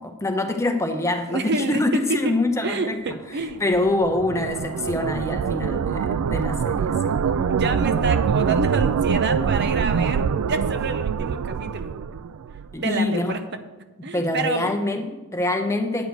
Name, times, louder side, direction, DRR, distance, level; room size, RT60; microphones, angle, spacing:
voice 1, 0.0-3.0 3.6-7.2 12.7-13.4 14.1-16.1, left 2 dB, 15° left, 5 dB, 0.7 m, -25 dB
voice 2, 1.3-2.4 2.6-3.6 7.2-11.9 12.8-13.6 14.0-14.7, right 3 dB, 50° right, 8 dB, 0.7 m, -28 dB
sound 1, 3.5-12.7, right 6 dB, 85° right, 0.4 m, -24 dB
9.3 x 4.9 x 7.9 m, 1.1 s
head